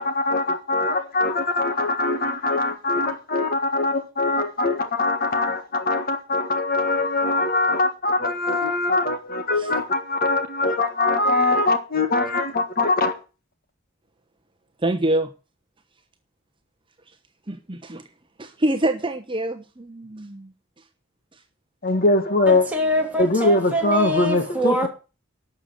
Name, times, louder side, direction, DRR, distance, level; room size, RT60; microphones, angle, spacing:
voice 1, 0.0-13.1 21.8-22.6 23.2-24.9, left 2 dB, 45° left, 1.7 m, -22 dB
voice 2, 14.8-15.3 17.5-18.0 18.4-20.5, right 1 dB, 25° right, 1.0 m, -25 dB
voice 3, 22.5-24.9, equal, 5° right, 2.8 m, -24 dB
12.0 x 6.8 x 7.9 m
head